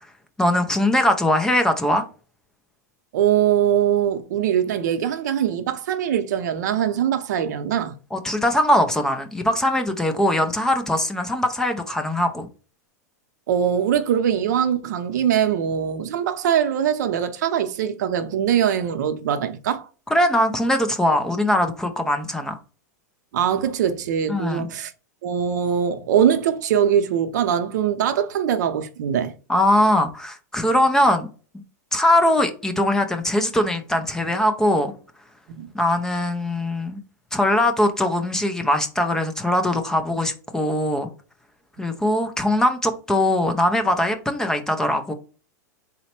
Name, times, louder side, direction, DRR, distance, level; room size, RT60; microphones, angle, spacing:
voice 1, 0.4-2.0 8.1-12.5 20.1-22.6 24.3-24.7 29.5-31.3 31.9-34.9 35.7-37.0 37.3-41.1 41.8-45.1, left 1 dB, 5° left, 0.4 m, -21 dB
voice 2, 3.1-7.9 13.5-19.9 23.3-24.9 25.2-29.3 35.5-35.7, right 9 dB, 75° right, 0.6 m, -22 dB
4.0 x 2.1 x 4.2 m
supercardioid pair, 145°, 10 cm